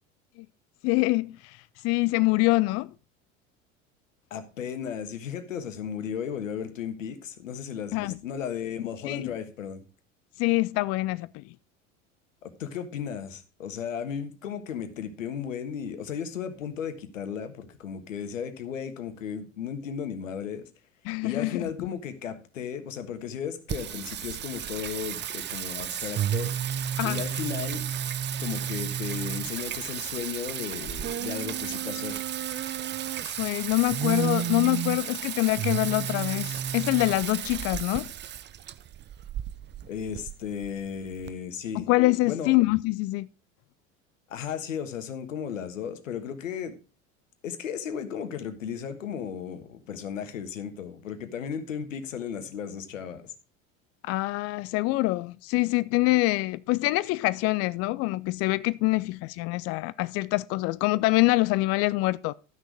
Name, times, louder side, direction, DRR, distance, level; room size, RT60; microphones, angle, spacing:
voice 1, 0.8-1.6 1.8-2.9 7.9-8.2 9.0-9.3 10.4-11.4 21.1-21.7 27.0-27.2 33.2-38.1 41.8-43.3 54.0-62.3, left 21 dB, 40° left, 0.4 m, -25 dB
voice 2, 4.3-9.8 12.4-20.7 21.2-26.5 27.0-27.9 28.4-32.2 39.9-41.9 42.2-42.5 44.3-46.8 47.4-53.3, left 8 dB, 80° left, 1.5 m, -35 dB
Singing, 23.7-41.3, right 10 dB, 30° right, 0.7 m, -32 dB
12.5 x 6.3 x 4.8 m
hypercardioid pair, 75°, 38 cm